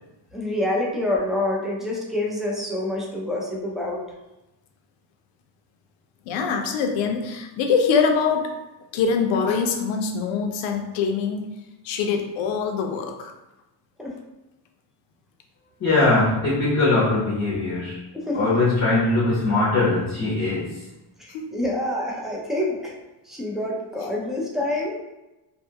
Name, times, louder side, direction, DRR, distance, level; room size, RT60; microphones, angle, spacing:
voice 1, 0.3-4.0 14.0-14.1 18.1-18.6 21.2-22.9 23.2-25.0, left 1 dB, ahead, -3 dB, 0.3 m, -27 dB
voice 2, 6.3-8.5 8.9-11.5 11.8-13.3 21.3-21.4, left 5 dB, 80° left, 4 dB, 0.6 m, -24 dB
voice 3, 15.8-18.0 18.3-20.8, left 2 dB, 35° left, -6 dB, 0.6 m, -21 dB
2.7 x 2.3 x 2.7 m, 1.0 s
cardioid pair, 125°, 45 cm